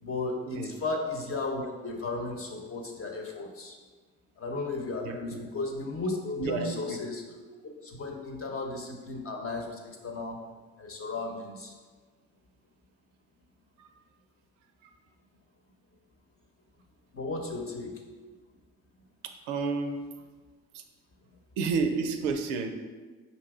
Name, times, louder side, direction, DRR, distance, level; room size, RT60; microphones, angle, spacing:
voice 1, 0.0-3.7 4.4-7.2 7.6-10.4 10.8-11.7 17.1-18.0, left 3 dB, 40° left, 2 dB, 0.9 m, -35 dB
voice 2, 5.0-5.4 6.4-7.0 13.8-13.9 14.8-14.9 19.2-20.0 20.7-20.8 21.6-22.7, right 4 dB, 90° right, 6 dB, 0.5 m, -31 dB
5.2 x 2.7 x 3.6 m, 1.4 s
hypercardioid pair, 60°, 36 cm